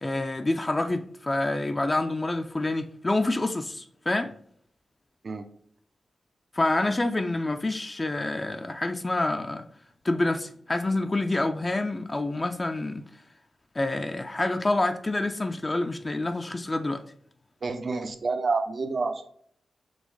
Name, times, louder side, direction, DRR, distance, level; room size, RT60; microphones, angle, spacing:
voice 1, 0.0-4.3 6.5-9.7 10.0-13.1 13.7-17.0, left 2 dB, 30° left, 0.4 m, -27 dB
voice 2, 17.6-19.3, right 4 dB, 55° right, 0.6 m, -28 dB
5.2 x 3.0 x 3.3 m
supercardioid pair, 45°, 0 cm